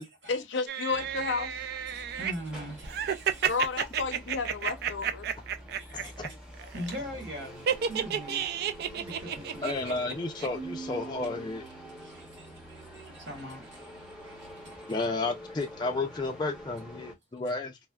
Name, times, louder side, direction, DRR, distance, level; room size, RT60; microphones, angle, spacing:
voice 1, 0.3-1.5 3.5-5.3, left 4 dB, 75° left, 0.6 m, -31 dB
sound 1, 0.7-2.3 2.8-6.3 6.5-7.0 7.7-10.1 10.4-10.5, right 8 dB, 55° right, 0.3 m, -31 dB
sound 2, 0.9-17.1, equal, 5° right, 0.7 m, -47 dB
voice 2, 1.9-3.5 5.7-6.1 6.6-8.4 8.8-9.8 12.0-15.0, equal, 75° right, 1.5 m, -42 dB
voice 3, 5.9-6.3 9.6-11.6 14.9-17.8, left 3 dB, 25° left, 0.3 m, -32 dB
Keyboard (musical), 10.5-12.3, right 4 dB, 30° right, 0.9 m, -43 dB
3.3 x 2.0 x 2.2 m
head